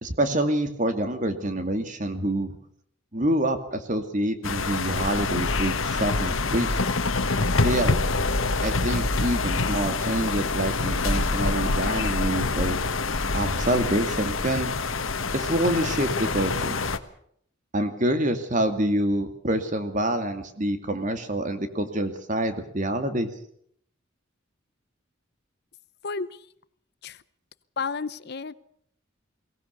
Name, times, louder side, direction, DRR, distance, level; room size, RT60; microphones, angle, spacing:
voice 1, 0.0-2.5 3.1-6.7 7.6-8.0 8.6-12.8 13.3-14.7 15.3-16.8 17.7-23.3, right 1 dB, 40° right, 8 dB, 2.4 m, -26 dB
sound 1, 4.4-17.0, left 3 dB, 85° left, 1.5 m, -26 dB
voice 2, 27.8-28.5, left 4 dB, 55° left, 16 dB, 0.8 m, -31 dB
22.5 x 18.5 x 6.8 m, 0.66 s
head